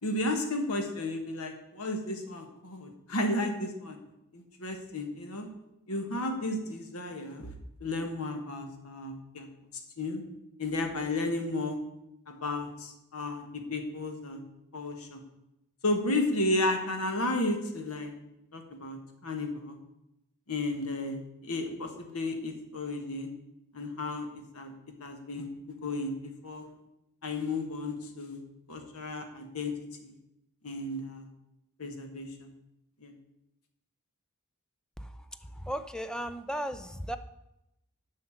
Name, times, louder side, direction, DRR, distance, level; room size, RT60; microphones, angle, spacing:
voice 1, 0.0-4.0 4.3-5.5 5.9-7.5 7.8-9.5 10.0-10.2 10.6-11.8 12.3-14.4 14.7-15.2 15.8-18.1 18.5-19.8 20.5-23.3 23.7-24.3 24.5-24.7 25.0-26.1 26.4-26.7 27.2-28.4 28.7-29.7 30.0-30.2 30.6-31.3 31.8-32.5 33.0-33.1, left 2 dB, 75° left, 4 dB, 1.5 m, -33 dB
voice 2, 35.6-37.2, equal, 5° left, 10 dB, 0.4 m, -35 dB
7.8 x 5.7 x 7.8 m, 0.87 s
head